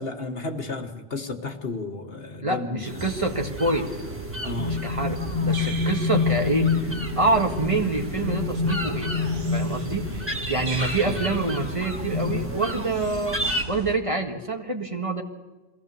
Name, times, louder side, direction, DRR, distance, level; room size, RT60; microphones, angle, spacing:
voice 1, 0.0-3.1 4.4-4.7 11.1-11.2, left 3 dB, 65° left, 4 dB, 1.8 m, -33 dB
voice 2, 2.4-3.9 4.6-6.8 7.2-9.1 9.5-10.1 10.5-13.4 13.7-15.2, right 2 dB, 30° right, 2 dB, 1.8 m, -26 dB
sound 1, 2.8-13.6, equal, 10° right, 1.6 m, -34 dB
sound 2, 3.0-14.0, right 4 dB, 70° right, 1.6 m, -37 dB
sound 3, 4.6-12.5, left 5 dB, 40° left, 1.4 m, -28 dB
23.5 x 16.5 x 6.9 m, 1.2 s
omnidirectional pair, 1.1 m